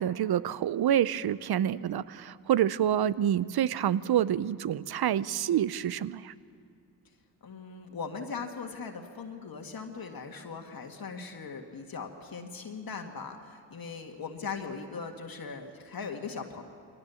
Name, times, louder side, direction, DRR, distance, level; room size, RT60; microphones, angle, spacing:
voice 1, 0.0-6.3, right 10 dB, 60° right, 18 dB, 0.7 m, -27 dB
voice 2, 7.4-16.6, left 5 dB, 50° left, 3 dB, 2.0 m, -39 dB
22.0 x 19.0 x 7.1 m, 2.3 s
supercardioid pair, 55°, 44 cm